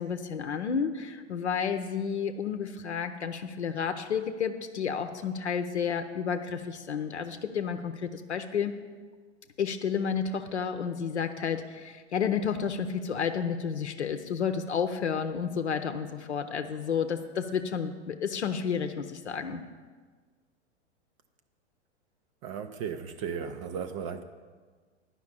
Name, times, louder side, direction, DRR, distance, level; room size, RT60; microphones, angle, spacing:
voice 1, 0.0-8.8 9.6-19.6, left 6 dB, 70° left, 7 dB, 0.8 m, -31 dB
voice 2, 22.4-24.2, right 7 dB, 30° right, 7 dB, 0.5 m, -35 dB
10.5 x 5.8 x 8.6 m, 1.5 s
figure-of-eight pair, 100°, 35 cm